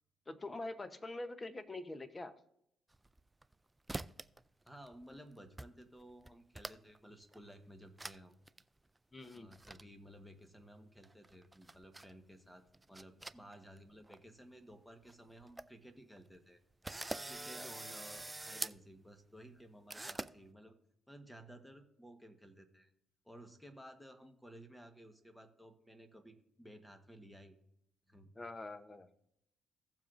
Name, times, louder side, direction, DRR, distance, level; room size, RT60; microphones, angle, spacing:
voice 1, 0.3-2.3 9.1-9.5 17.5-17.7 28.4-29.1, left 2 dB, 25° left, 10 dB, 0.8 m, -45 dB
sound 1, 2.9-3.5 3.9-4.4 4.7-5.2 5.6-5.7 6.0-7.0 7.3-7.4 8.0-8.2 8.5-8.6 9.2-9.8 11.0-12.1 12.7-13.8 14.1-14.2 14.7-14.8 15.1-15.2 15.4-15.7 16.2-16.3 16.8-18.8 19.9-20.3, right 2 dB, 15° right, 0.3 m, -44 dB
voice 2, 4.6-8.3 9.3-16.6 17.2-20.7 21.1-22.9 23.2-27.6 28.1-28.3, equal, 5° left, 7 dB, 1.2 m, -56 dB
16.0 x 7.3 x 2.5 m, 0.76 s
cardioid pair, 90°, 0 cm